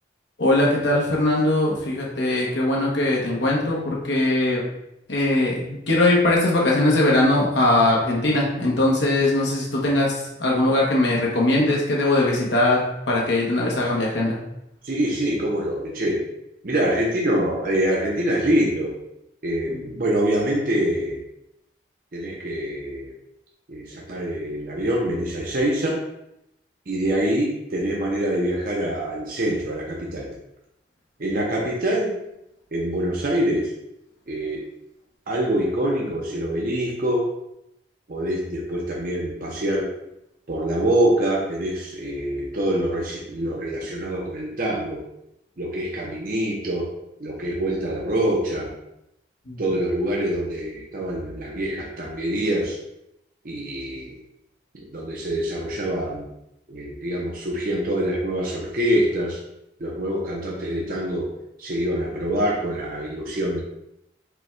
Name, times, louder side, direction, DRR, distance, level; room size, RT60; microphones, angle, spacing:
voice 1, 0.4-4.6 5.1-14.4 19.7-19.9 49.5-49.6, left 2 dB, 80° left, -3 dB, 1.0 m, -21 dB
voice 2, 14.8-16.2 16.6-18.9 19.4-21.2 22.1-23.1 23.7-26.0 26.9-30.3 31.2-32.1 32.7-33.7 34.3-34.6 35.3-37.3 38.1-39.9 40.5-45.0 45.6-46.9 47.2-48.7 49.6-52.8 53.4-54.1 54.7-56.3 56.7-59.4 59.8-61.3 61.6-63.6, right 1 dB, 50° right, -3 dB, 0.7 m, -25 dB
5.1 x 2.3 x 4.3 m, 0.84 s
head